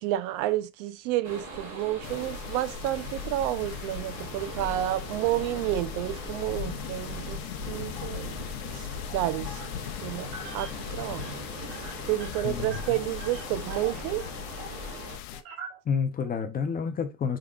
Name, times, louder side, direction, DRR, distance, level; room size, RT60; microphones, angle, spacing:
voice 1, 0.0-7.4 7.7-8.4 8.7-8.8 9.1-9.6 10.0-11.4 12.1-14.2, right 14 dB, 65° right, 0.6 m, -30 dB
sound 1, 1.2-15.2, equal, 35° right, 2.4 m, -40 dB
sound 2, 2.0-15.4, left 12 dB, 80° left, 0.6 m, -40 dB
sound 3, 7.9-8.5 9.1-9.9 10.2-10.8 11.1-11.3 11.6-14.8 15.3-16.3, right 3 dB, 80° right, 1.4 m, -44 dB
voice 2, 12.4-13.0 15.9-17.4, left 6 dB, 20° left, 0.4 m, -29 dB
4.8 x 3.8 x 2.3 m
supercardioid pair, 115°, 43 cm